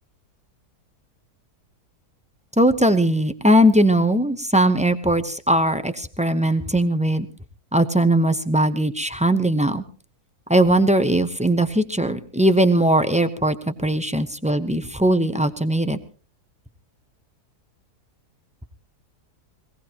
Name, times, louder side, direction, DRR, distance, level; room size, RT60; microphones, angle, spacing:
voice 1, 2.6-7.3 7.7-9.8 10.5-16.0, right 1 dB, 10° right, 9 dB, 0.3 m, -19 dB
23.0 x 18.0 x 2.9 m, 0.37 s
omnidirectional pair, 1.7 m